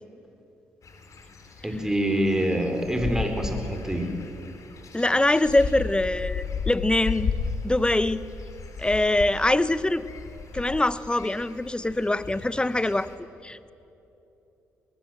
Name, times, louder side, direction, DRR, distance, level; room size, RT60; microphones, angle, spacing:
sound 1, 0.8-13.1, left 5 dB, 55° left, 3.3 m, -35 dB
voice 1, 1.6-4.1, right 1 dB, 10° right, 4 dB, 4.6 m, -26 dB
voice 2, 4.9-7.3 7.6-8.2 8.8-10.0 10.5-13.1 13.4-13.7, left 2 dB, 15° left, 16 dB, 1.0 m, -23 dB
24.5 x 20.0 x 7.7 m, 2.9 s
hypercardioid pair, 50°, 7 cm